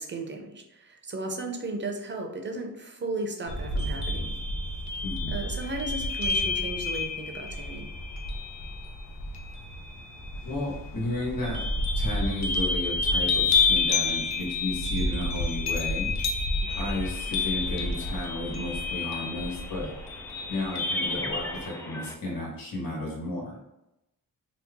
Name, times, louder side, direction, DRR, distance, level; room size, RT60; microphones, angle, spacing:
voice 1, 0.0-4.3 5.3-7.9, right 2 dB, 30° right, 2 dB, 0.7 m, -35 dB
sound 1, 3.5-21.7, left 3 dB, 45° left, 0.7 m, -29 dB
voice 2, 5.0-5.3 10.4-11.6 11.9-16.1 16.7-19.9 20.5-23.6, left 2 dB, 60° left, -4 dB, 1.4 m, -33 dB
sound 2, 16.7-22.1, left 1 dB, 10° left, 0.4 m, -42 dB
2.9 x 2.3 x 3.5 m, 0.88 s
cardioid pair, 65°, 38 cm